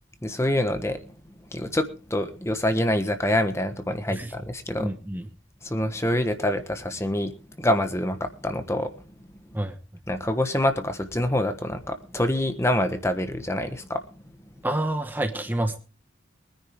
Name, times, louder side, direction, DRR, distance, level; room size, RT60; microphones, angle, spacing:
voice 1, 0.2-1.0 1.5-4.9 5.6-8.9 10.1-14.0, left 1 dB, 15° left, 8 dB, 1.2 m, -26 dB
voice 2, 4.8-5.3 9.5-9.8 14.6-15.8, right 1 dB, 10° right, 6 dB, 1.1 m, -28 dB
23.0 x 10.0 x 3.6 m, 0.36 s
head